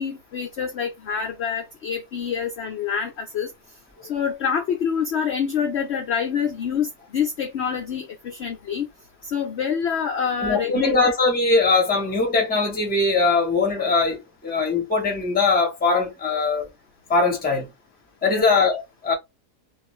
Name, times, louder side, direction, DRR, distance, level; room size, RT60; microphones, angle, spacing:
voice 1, 0.0-3.5 4.1-8.9 9.2-11.1 18.2-18.4, left 7 dB, 65° left, 0.6 m, -26 dB
voice 2, 10.4-16.7 17.1-17.7 18.2-19.1, left 3 dB, 10° left, 0.6 m, -21 dB
2.5 x 2.4 x 3.1 m
omnidirectional pair, 1.7 m